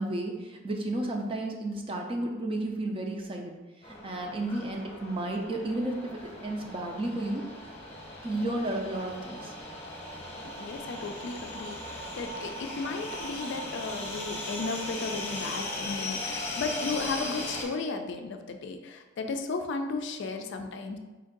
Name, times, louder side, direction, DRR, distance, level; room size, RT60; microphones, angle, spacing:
voice 1, 0.0-3.6 3.9-7.4 8.2-9.5, right 1 dB, 25° right, 2 dB, 0.5 m, -32 dB
sound 1, 3.8-17.6, left 1 dB, 30° left, 0.8 m, -38 dB
voice 2, 10.4-21.0, left 4 dB, 60° left, 6 dB, 0.4 m, -35 dB
4.3 x 2.6 x 3.8 m, 1.2 s
head